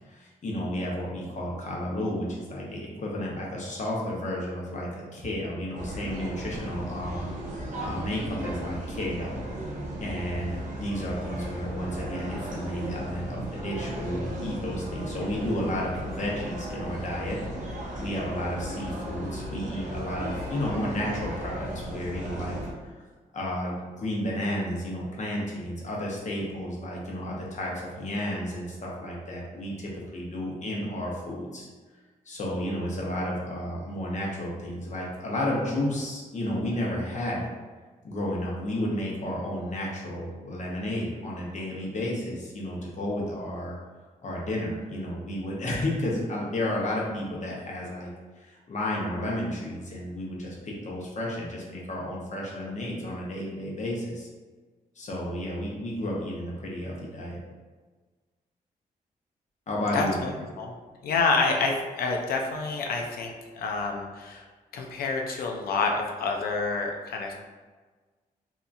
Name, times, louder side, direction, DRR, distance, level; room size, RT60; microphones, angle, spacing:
voice 1, 0.1-7.3 7.8-9.4 10.0-17.4 18.0-22.6 22.8-23.0 23.3-31.7 32.3-37.4 38.0-43.8 44.2-48.1 48.4-54.3 55.0-57.4 59.7-60.2, left 1 dB, 50° left, -3 dB, 0.9 m, -32 dB
sound 1, 5.7-22.7, right 1 dB, 60° right, 0.8 m, -36 dB
voice 2, 59.9-60.7 61.0-64.5 64.7-67.3, left 4 dB, 80° left, 1 dB, 0.4 m, -28 dB
2.8 x 2.4 x 2.5 m, 1.4 s
cardioid pair, 60°, 15 cm